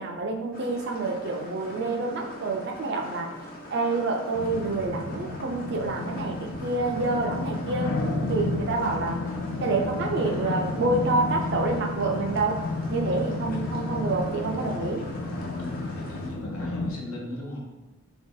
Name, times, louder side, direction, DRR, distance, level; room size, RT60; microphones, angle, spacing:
voice 1, 0.0-3.3 3.7-7.9 8.3-9.2 9.6-12.6 12.9-15.1, right 3 dB, 50° right, 2 dB, 0.4 m, -27 dB
sound 1, 0.5-16.3, left 1 dB, 40° left, 0.5 m, -43 dB
sound 2, 4.3-16.9, left 2 dB, 90° left, 0.5 m, -32 dB
voice 2, 15.6-17.6, left 1 dB, 75° left, -2 dB, 0.9 m, -37 dB
2.9 x 2.6 x 3.8 m, 1.1 s
head